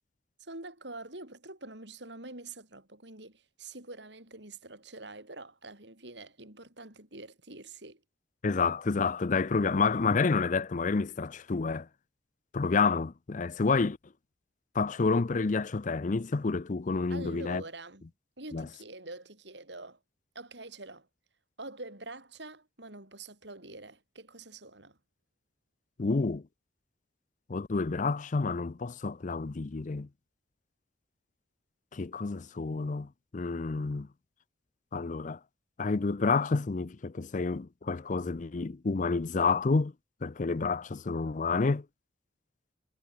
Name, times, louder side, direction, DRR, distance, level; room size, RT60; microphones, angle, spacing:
voice 1, 0.4-8.0 17.1-18.0 18.4-20.0 20.3-21.1 21.6-25.0, right 2 dB, 65° right, 6.4 m, -45 dB
voice 2, 8.4-11.9 12.5-14.0 14.7-17.6 18.5-18.7 26.0-26.4 27.5-30.1 31.9-34.1 34.9-35.4 35.8-39.9 40.2-41.8, left 4 dB, 45° left, 0.5 m, -29 dB
head